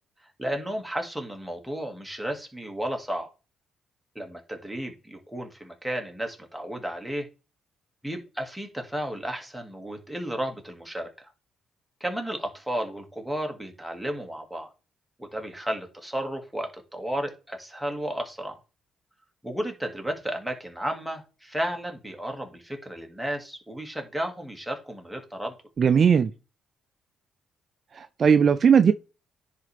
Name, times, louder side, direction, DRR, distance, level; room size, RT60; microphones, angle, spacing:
voice 1, 0.4-3.3 4.2-7.3 8.0-11.1 12.0-14.7 15.2-18.5 19.4-25.5, right 1 dB, ahead, 1.9 m, -33 dB
voice 2, 25.8-26.3 27.9-28.9, right 7 dB, 45° right, 0.4 m, -18 dB
10.0 x 4.1 x 3.4 m
cardioid pair, 90°, 0 cm